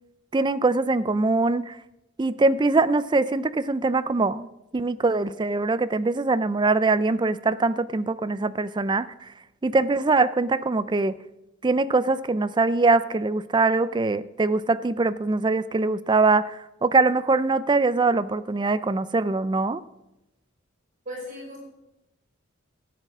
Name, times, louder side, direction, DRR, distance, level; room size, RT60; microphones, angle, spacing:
voice 1, 0.3-1.8 2.2-4.5 4.7-9.1 9.6-11.1 11.6-19.8, right 3 dB, 20° right, 15 dB, 0.4 m, -22 dB
voice 2, 21.1-21.6, equal, 40° right, -3 dB, 5.3 m, -36 dB
15.0 x 9.0 x 6.1 m, 0.94 s
head